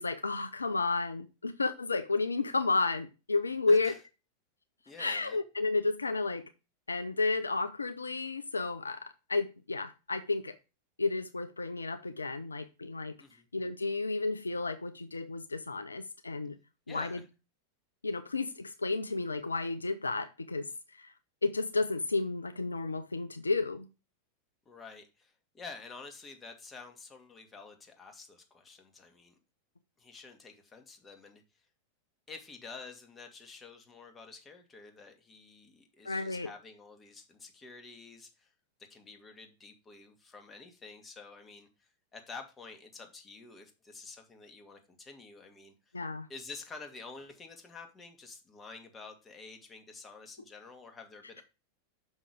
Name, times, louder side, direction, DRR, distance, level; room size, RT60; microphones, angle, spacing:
voice 1, 0.0-3.9 5.0-6.4 6.9-10.6 11.0-13.1 13.5-16.6 16.9-17.2 18.0-21.1 21.4-23.9 36.0-36.5 45.9-46.3, left 3 dB, 80° left, 0.5 m, -32 dB
voice 2, 3.7-4.0 4.9-5.4 13.2-13.5 16.9-17.3 24.7-29.4 30.0-31.4 32.3-38.5 38.9-45.7 46.3-51.4, left 4 dB, 20° left, 1.7 m, -49 dB
6.2 x 5.4 x 5.0 m
figure-of-eight pair, 90°, 0 cm